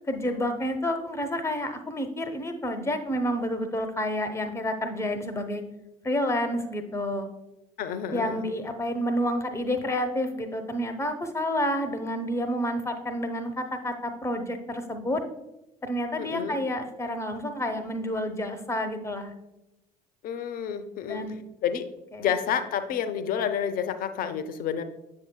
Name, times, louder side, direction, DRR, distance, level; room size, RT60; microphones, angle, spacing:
voice 1, 0.1-5.6 6.0-7.3 8.1-15.2 15.8-19.3 21.1-21.4 22.1-22.3, equal, 15° left, 7 dB, 0.8 m, -29 dB
voice 2, 7.8-8.4 16.2-16.6 20.2-21.2 21.6-21.9 22.2-24.8, left 8 dB, 45° left, 10 dB, 0.6 m, -29 dB
7.2 x 6.5 x 2.2 m, 0.94 s
figure-of-eight pair, 55°, 20 cm